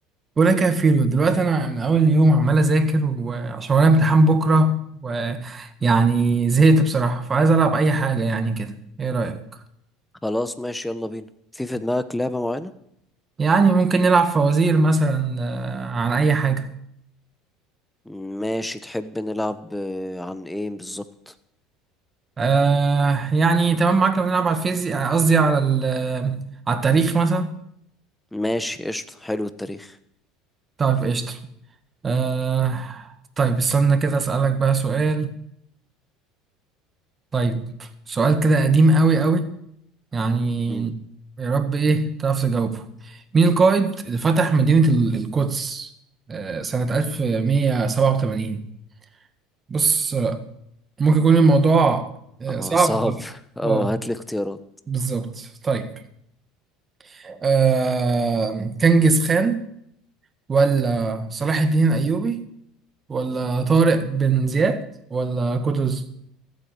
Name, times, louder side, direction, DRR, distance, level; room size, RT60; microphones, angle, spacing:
voice 1, 0.4-9.4 13.4-16.7 22.4-27.6 30.8-31.4 32.0-33.1 33.4-35.3 37.3-39.5 40.1-41.0 41.4-45.9 46.3-48.6 49.7-50.5 51.0-52.1 52.4-53.2 53.6-53.9 54.9-55.9 57.1-59.7 60.5-62.5 63.1-66.1, right 3 dB, 30° right, 1.9 m, -20 dB
voice 2, 10.2-11.3 11.5-12.7 18.1-21.3 28.3-29.9 40.7-40.9 52.5-54.6, left 1 dB, 5° left, 1.2 m, -28 dB
14.5 x 8.3 x 8.9 m
supercardioid pair, 90°, 0 cm